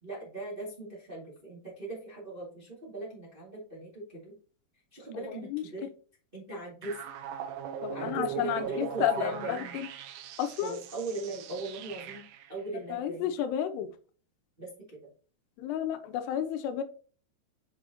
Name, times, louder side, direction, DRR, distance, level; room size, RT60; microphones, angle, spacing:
voice 1, 0.0-4.3 4.9-5.9 6.3-7.0 7.9-9.8 10.6-12.2 12.5-13.3 14.6-15.1, right 2 dB, 20° right, 1.4 m, -39 dB
voice 2, 5.1-5.6 7.8-9.9 10.4-10.8 12.9-13.9 15.6-16.8, left 10 dB, 85° left, 2.7 m, -32 dB
sound 1, 6.8-12.5, right 8 dB, 90° right, 1.9 m, -40 dB
7.0 x 6.1 x 2.8 m
omnidirectional pair, 4.8 m